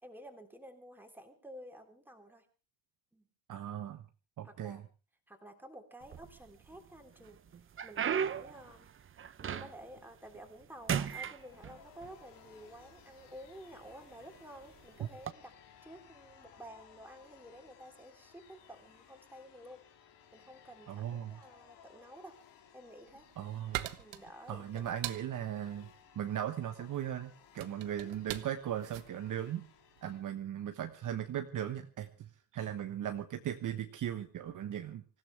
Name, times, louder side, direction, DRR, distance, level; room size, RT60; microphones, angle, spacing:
voice 1, 0.0-2.5 3.1-3.3 4.4-4.8 5.3-7.4 7.8-8.9 9.4-15.5 15.8-19.8 20.3-22.4 22.7-23.3 24.0-24.9 28.0-28.1, equal, 5° right, 4 dB, 3.4 m, -52 dB
voice 2, 3.5-4.1 4.4-4.8 20.9-21.4 23.4-23.9 24.5-25.9 26.1-29.7 30.0-35.0, right 10 dB, 45° right, 7 dB, 1.2 m, -38 dB
sound 1, 6.0-6.8 7.2-10.0 10.3-10.6 10.9-12.1 12.9-13.0 13.7-13.9 15.1-15.3, right 8 dB, 30° right, 0.8 m, -36 dB
sound 2, 10.8-30.2, left 8 dB, 65° left, 3.3 m, -61 dB
sound 3, 22.8-30.3, right 16 dB, 80° right, 1.2 m, -44 dB
25.5 x 15.5 x 3.4 m, 0.34 s
cardioid pair, 130°, 44 cm